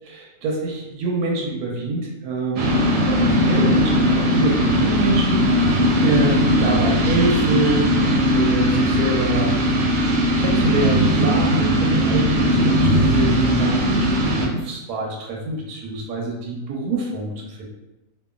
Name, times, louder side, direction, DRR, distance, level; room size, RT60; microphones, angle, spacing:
voice 1, 0.0-7.9 8.3-9.5 9.9-17.7, right 2 dB, 90° right, -1 dB, 1.2 m, -26 dB
sound 1, 2.6-14.5, equal, 70° right, 0.9 m, -19 dB
2.9 x 2.3 x 2.3 m, 0.98 s
omnidirectional pair, 1.6 m